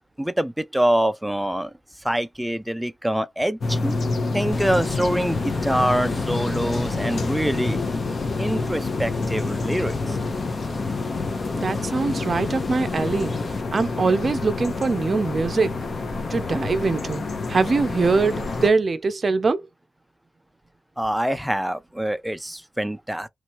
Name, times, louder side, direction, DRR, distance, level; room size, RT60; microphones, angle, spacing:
voice 1, 0.2-1.7 2.0-4.1 4.3-7.8 8.4-10.2 21.0-23.3, right 1 dB, 5° right, 0.5 m, -25 dB
sound 1, 3.6-18.7, left 3 dB, 55° left, 0.9 m, -28 dB
sound 2, 4.5-13.6, left 3 dB, 35° left, 0.8 m, -33 dB
voice 2, 11.5-13.3 13.7-15.7 16.3-17.2 17.5-19.6, right 4 dB, 45° right, 0.6 m, -22 dB
3.1 x 2.7 x 3.0 m
wide cardioid pair, 105°, 0 cm